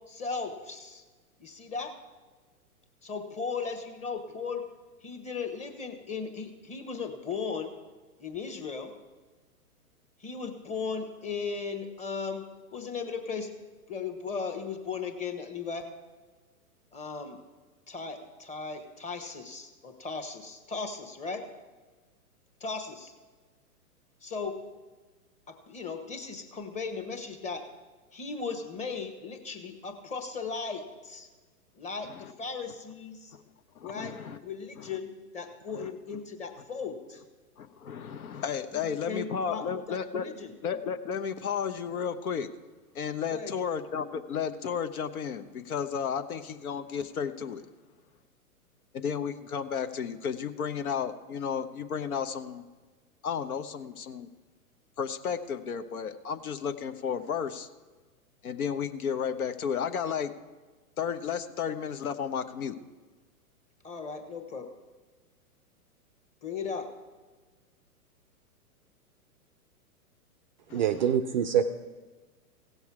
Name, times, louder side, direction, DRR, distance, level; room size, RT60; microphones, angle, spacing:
voice 1, 0.1-1.0 1.4-1.9 3.0-4.6 5.0-7.7 8.2-8.9 10.2-12.4 12.7-13.5 13.9-15.8 16.9-17.4 17.9-21.4 22.6-23.1 24.2-24.6 25.5-27.6 28.1-31.3 31.8-33.4 33.8-34.1 34.4-37.2 39.0-40.5 43.3-43.5 63.8-64.7 66.4-66.9, left 5 dB, 15° left, 6 dB, 1.2 m, -37 dB
voice 2, 33.8-34.4 34.8-34.9 35.7-35.9 37.6-40.2 40.6-42.5 42.9-47.6 48.9-52.6 53.2-54.3 55.0-57.7 58.4-60.3 61.0-62.8 70.7-71.2, left 7 dB, 70° left, 10 dB, 1.0 m, -33 dB
voice 3, 70.7-71.7, right 8 dB, 35° right, 10 dB, 0.4 m, -25 dB
16.5 x 7.1 x 4.7 m, 1.3 s
hypercardioid pair, 120°, 45 cm